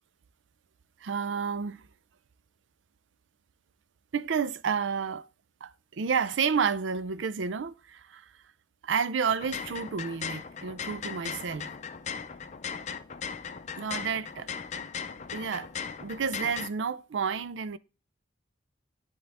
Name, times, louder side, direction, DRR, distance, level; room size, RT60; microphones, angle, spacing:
voice 1, 1.0-1.9 4.1-5.3 5.6-8.3 8.8-11.7 13.8-14.5 15.3-15.7 16.0-17.8, right 6 dB, 85° right, 0.5 m, -30 dB
sound 1, 9.3-16.7, left 6 dB, 40° left, 0.5 m, -38 dB
10.0 x 3.9 x 3.4 m
head